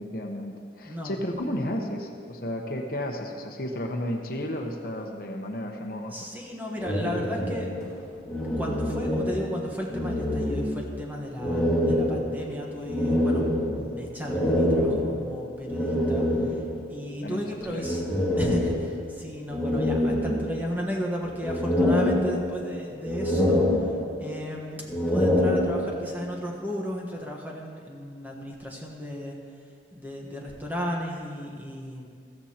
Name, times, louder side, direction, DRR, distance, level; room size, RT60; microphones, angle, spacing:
voice 1, 0.0-6.1 17.2-17.4 17.7-18.0, left 1 dB, 55° left, 3 dB, 1.0 m, -33 dB
voice 2, 0.8-1.2 6.1-7.8 8.6-16.6 16.9-18.1 18.4-23.7 24.2-29.5 29.9-32.1, equal, 10° right, -1 dB, 1.2 m, -34 dB
sound 1, 6.8-9.6 9.9-11.0 11.4-16.8 17.8-19.1 19.5-20.8 21.2-22.7 23.0-24.3 24.8-26.1, left 1 dB, 5° left, 1.9 m, -26 dB
14.0 x 14.0 x 2.9 m, 2.2 s
head